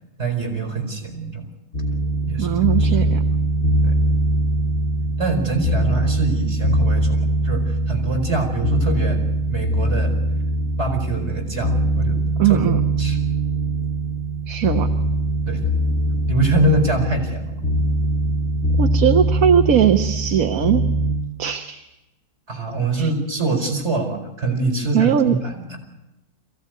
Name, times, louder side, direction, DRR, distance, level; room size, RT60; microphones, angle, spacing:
voice 1, 0.2-1.5 2.3-3.1 3.8-4.0 5.2-9.2 9.5-10.1 10.8-12.2 12.4-12.6 13.0-13.2 15.5-15.6 16.3-17.6 22.5-25.8, right 2 dB, 40° right, 3 dB, 5.3 m, -24 dB
sound 1, 1.7-21.1, right 1 dB, 55° left, 2.5 m, -22 dB
voice 2, 2.4-3.2 12.4-12.8 14.5-14.9 18.8-20.8 21.4-21.8 23.0-23.1 24.9-25.4, right 9 dB, 60° right, 7 dB, 1.4 m, -19 dB
23.0 x 16.5 x 9.5 m, 0.99 s
omnidirectional pair, 1.7 m